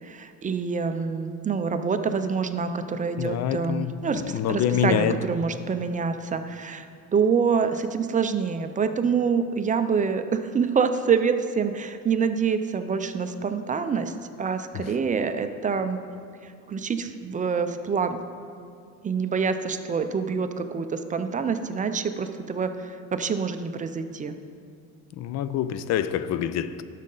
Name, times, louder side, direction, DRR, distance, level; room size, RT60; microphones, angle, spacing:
voice 1, 0.0-6.9 7.1-16.0 16.4-18.2 19.0-24.3, right 5 dB, 25° right, 0.4 m, -26 dB
voice 2, 3.2-5.2 25.2-26.8, left 9 dB, 55° left, 0.4 m, -26 dB
11.0 x 6.5 x 3.8 m
cardioid pair, 110°, 32 cm